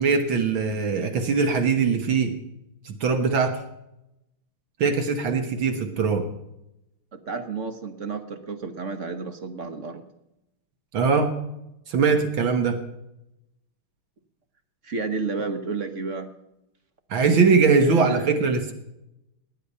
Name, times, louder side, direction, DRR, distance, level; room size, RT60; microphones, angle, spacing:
voice 1, 0.0-2.3 2.8-3.6 4.8-6.2 10.9-11.4 11.9-12.8 17.1-18.7, right 5 dB, 65° right, 7 dB, 2.0 m, -21 dB
voice 2, 7.1-10.0 14.8-16.3 17.2-18.3, right 4 dB, 45° right, 8 dB, 1.1 m, -32 dB
18.5 x 10.5 x 5.5 m, 0.88 s
omnidirectional pair, 2.4 m